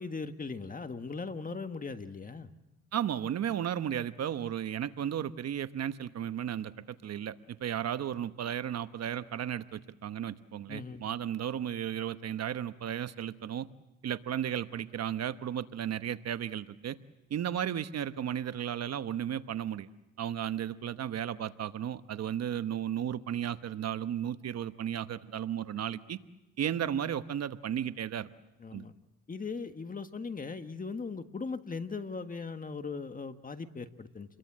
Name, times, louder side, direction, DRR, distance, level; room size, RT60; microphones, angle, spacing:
voice 1, 0.0-2.5 10.7-11.0 28.6-28.9 29.3-34.4, left 4 dB, 30° left, 8 dB, 1.6 m, -39 dB
voice 2, 2.9-7.3 7.6-13.7 14.0-17.0 17.3-19.9 20.2-26.2 26.6-28.3 28.7-28.9, right 9 dB, 55° right, 12 dB, 1.0 m, -34 dB
29.0 x 22.0 x 7.5 m, 0.93 s
cardioid pair, 90°, 30 cm